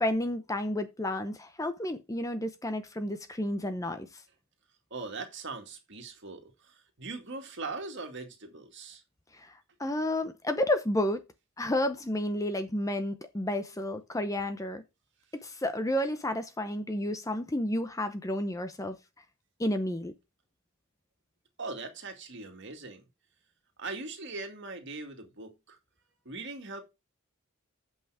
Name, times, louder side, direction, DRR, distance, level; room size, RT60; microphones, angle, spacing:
voice 1, 0.0-4.1 9.8-11.2 11.6-14.8 15.4-19.0 19.6-20.1, left 1 dB, 15° left, 0.7 m, -31 dB
voice 2, 4.9-9.0 21.6-23.0 23.8-25.8 26.3-26.8, right 3 dB, 60° right, 2.2 m, -40 dB
8.5 x 5.7 x 4.8 m
head